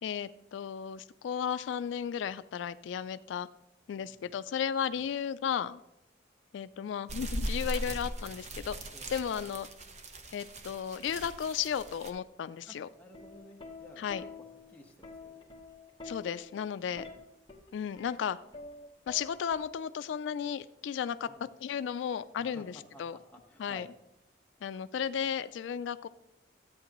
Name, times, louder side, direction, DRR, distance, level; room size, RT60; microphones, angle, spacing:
voice 1, 0.0-3.5 3.9-5.8 6.5-8.8 9.1-9.7 10.3-12.9 14.0-14.2 16.0-17.0 17.7-18.4 19.1-21.3 21.6-23.2 23.6-23.8 24.6-26.1, left 8 dB, 80° left, 14 dB, 0.3 m, -34 dB
voice 2, 3.9-4.3 4.9-5.0 8.9-9.1 12.7-14.3 14.7-15.5 16.9-17.1 21.2-21.4 22.4-23.9, equal, 10° left, -1 dB, 1.2 m, -54 dB
sound 1, 7.1-12.1, right 1 dB, 35° right, 0.8 m, -39 dB
Plucked string instrument, 12.9-20.2 21.3-21.6, left 3 dB, 25° left, 1.3 m, -48 dB
13.0 x 8.5 x 3.0 m, 0.86 s
head